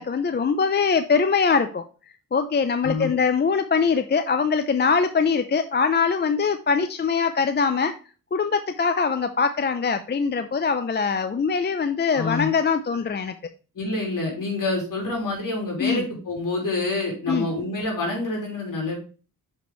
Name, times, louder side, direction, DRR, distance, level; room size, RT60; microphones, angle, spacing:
voice 1, 0.0-1.8 2.3-7.9 8.3-13.3 15.8-16.0 17.3-17.5, left 5 dB, 30° left, 9 dB, 0.5 m, -22 dB
voice 2, 12.2-12.5 13.7-19.0, left 2 dB, 65° left, 0 dB, 3.3 m, -27 dB
6.5 x 5.1 x 3.1 m, 0.36 s
wide cardioid pair, 100°, 35 cm